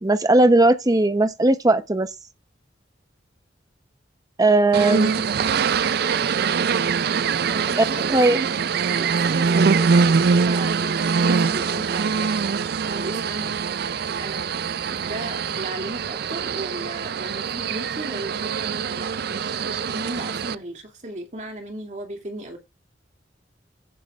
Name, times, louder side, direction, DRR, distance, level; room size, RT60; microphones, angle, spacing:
voice 1, 0.0-2.1 4.4-5.1 8.1-8.4, right 2 dB, 20° right, 0.8 m, -18 dB
voice 2, 4.5-5.0 7.5-13.5 14.2-22.6, right 1 dB, 45° right, 2.5 m, -36 dB
sound 1, 4.7-20.5, right 5 dB, 60° right, 0.4 m, -23 dB
16.5 x 7.3 x 2.4 m
head